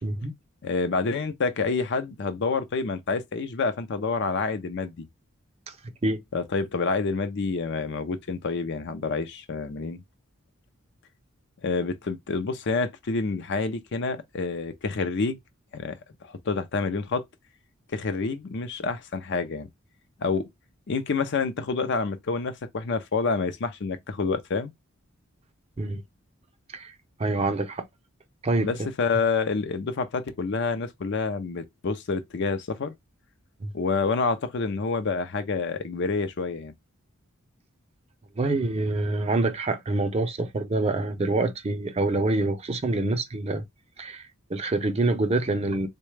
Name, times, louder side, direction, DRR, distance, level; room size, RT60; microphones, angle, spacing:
voice 1, 0.0-0.3 5.7-6.2 25.8-26.0 26.7-26.9 27.2-27.8 28.4-28.7 33.6-33.7 38.4-43.6 44.0-45.9, right 2 dB, 30° right, 0.5 m, -26 dB
voice 2, 0.6-5.1 6.3-10.0 11.6-15.4 15.7-17.2 17.9-19.7 20.2-20.5 20.9-24.7 28.6-32.9 33.7-36.7, left 4 dB, 55° left, 0.5 m, -28 dB
3.9 x 2.2 x 3.2 m
head